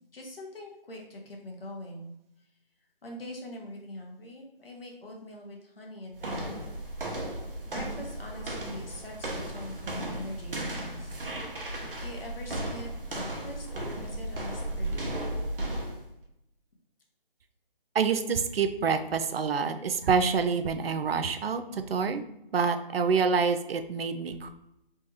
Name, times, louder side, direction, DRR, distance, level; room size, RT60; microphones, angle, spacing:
voice 1, 0.1-2.1 3.0-6.7 7.2-11.1 12.0-15.2, left 1 dB, 75° left, 0 dB, 1.0 m, -43 dB
sound 1, 6.2-16.1, right 1 dB, 65° right, 0.8 m, -35 dB
voice 2, 17.9-22.2 22.5-24.5, right 5 dB, 85° right, 9 dB, 0.4 m, -27 dB
3.3 x 2.2 x 3.0 m, 0.82 s
figure-of-eight pair, 160°, 29 cm